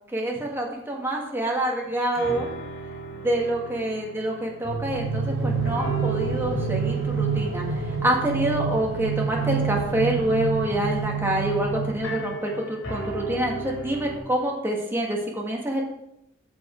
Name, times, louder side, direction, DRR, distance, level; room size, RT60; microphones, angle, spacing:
voice 1, 0.1-2.5 3.1-15.8, right 1 dB, 10° right, -1 dB, 1.8 m, -27 dB
sound 1, 1.8-1.9 2.1-5.3 5.6-14.2, right 2 dB, 80° left, 3.2 m, -37 dB
sound 2, 4.6-12.6, right 5 dB, 80° right, 2.9 m, -28 dB
14.0 x 5.5 x 4.5 m, 0.80 s
head